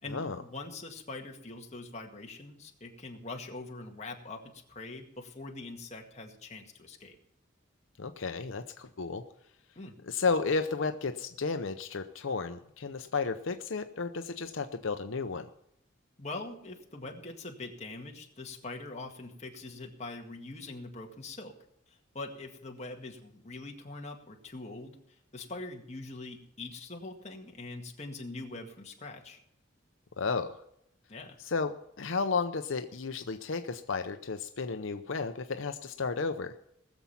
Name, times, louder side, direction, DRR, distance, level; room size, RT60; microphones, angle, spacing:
voice 1, 0.0-7.2 9.8-10.0 16.2-21.6 21.9-29.4 31.1-31.4, left 2 dB, 35° left, 1 dB, 1.9 m, -43 dB
voice 2, 8.0-9.2 10.0-15.5 30.2-30.6 31.4-36.6, left 4 dB, 80° left, 8 dB, 0.7 m, -33 dB
19.5 x 7.2 x 5.8 m, 0.76 s
head